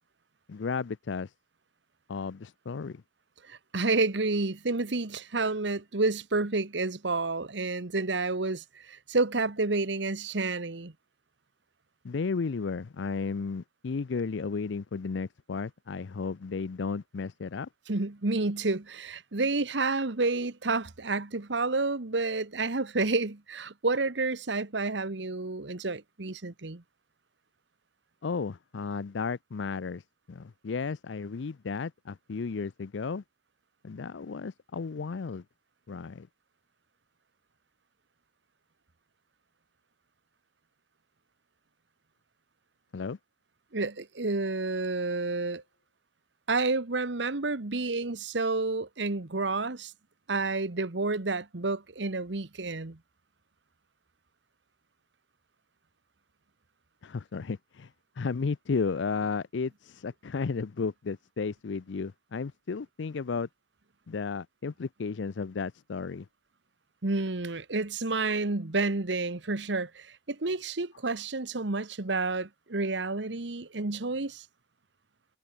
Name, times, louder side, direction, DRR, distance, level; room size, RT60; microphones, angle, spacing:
voice 1, 0.5-1.3 2.1-3.0 12.0-17.7 28.2-33.2 33.8-35.4 35.9-36.3 42.9-43.2 57.0-63.5 64.1-66.3, left 4 dB, 85° left, 0.5 m, -33 dB
voice 2, 3.5-10.9 17.9-26.8 43.7-45.6 46.5-49.9 50.3-53.0 67.0-74.4, right 3 dB, 80° right, 1.3 m, -30 dB
head